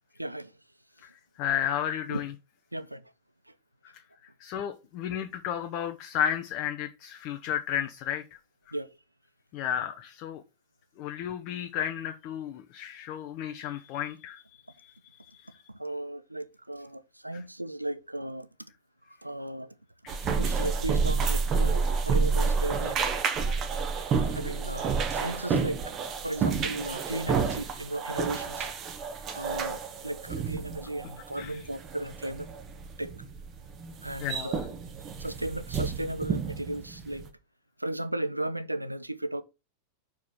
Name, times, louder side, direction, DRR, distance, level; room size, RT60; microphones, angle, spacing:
voice 1, 0.2-0.5 2.1-2.2 2.7-3.1 3.5-3.6 8.7-8.9 15.7-18.5 19.1-19.8 20.3-23.0 24.3-25.8 26.2-28.7 29.3-32.5 33.0-33.1 34.0-34.6 35.2-37.3 37.8-39.4, right 1 dB, 85° right, 0.6 m, -35 dB
voice 2, 1.0-2.3 3.8-8.4 8.7-8.8 9.5-10.4 11.0-15.7 17.3-17.4 20.0-20.4 31.4-31.6 34.2-34.6, left 9 dB, 45° left, 0.7 m, -33 dB
sound 1, 20.1-37.3, right 5 dB, 30° right, 1.1 m, -30 dB
4.8 x 4.7 x 5.6 m
figure-of-eight pair, 90°, 0 cm